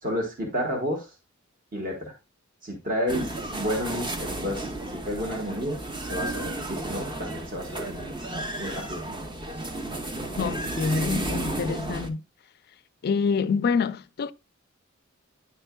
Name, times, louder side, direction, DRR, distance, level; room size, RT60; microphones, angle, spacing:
voice 1, 0.0-1.1 1.7-2.1 2.6-8.1 8.6-9.2 11.5-11.6, equal, 40° right, 1.3 m, -31 dB
sound 1, 3.1-12.1, right 1 dB, 25° right, 0.7 m, -33 dB
voice 2, 10.3-12.2 13.0-14.3, left 5 dB, 50° left, 0.4 m, -26 dB
9.6 x 4.4 x 2.2 m
head